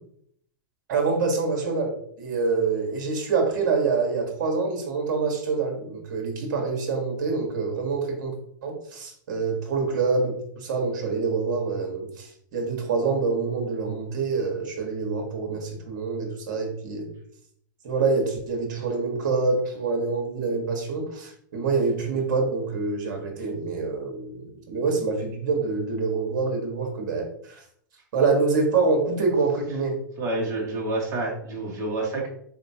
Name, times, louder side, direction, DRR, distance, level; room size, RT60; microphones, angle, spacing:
voice 1, 0.9-8.3 8.6-17.1 17.8-27.6 28.1-29.9, right 4 dB, 65° right, 2 dB, 1.3 m, -26 dB
voice 2, 30.2-32.3, right 2 dB, 30° right, -2 dB, 1.5 m, -28 dB
4.2 x 2.8 x 2.7 m, 0.67 s
hypercardioid pair, 130°, 11 cm